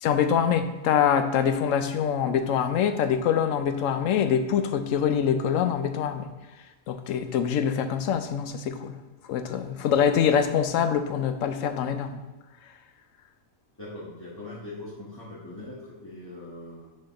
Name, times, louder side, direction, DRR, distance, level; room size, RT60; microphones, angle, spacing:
voice 1, 0.0-6.3 6.9-8.9 9.3-12.2, left 8 dB, 85° left, 9 dB, 1.0 m, -24 dB
voice 2, 13.8-17.0, left 2 dB, 20° left, -10 dB, 1.3 m, -41 dB
6.4 x 4.2 x 4.1 m, 1.2 s
omnidirectional pair, 1.3 m